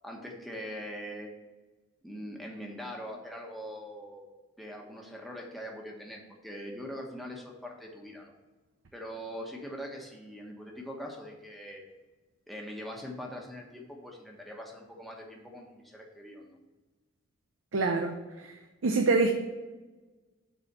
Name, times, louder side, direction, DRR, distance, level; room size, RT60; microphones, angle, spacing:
voice 1, 0.0-1.3 2.0-4.2 4.6-8.3 8.9-11.8 12.5-16.6, equal, ahead, -1 dB, 1.2 m, -42 dB
voice 2, 17.7-18.2 18.4-18.5 18.8-19.3, right 3 dB, 85° right, 4 dB, 0.7 m, -25 dB
6.9 x 4.3 x 6.7 m, 1.2 s
head